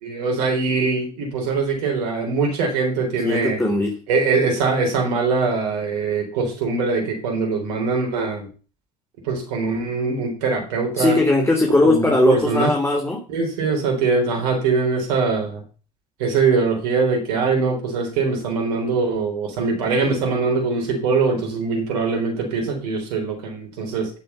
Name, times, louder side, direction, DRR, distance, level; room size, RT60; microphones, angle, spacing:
voice 1, 0.0-3.6 4.1-8.5 9.2-11.2 11.8-12.7 13.3-15.6 16.2-24.1, right 4 dB, 80° right, 1 dB, 4.2 m, -22 dB
voice 2, 3.2-3.9 11.0-13.2, left 2 dB, 10° left, 2 dB, 3.3 m, -19 dB
11.5 x 7.7 x 5.7 m, 0.37 s
hypercardioid pair, 65°, 20 cm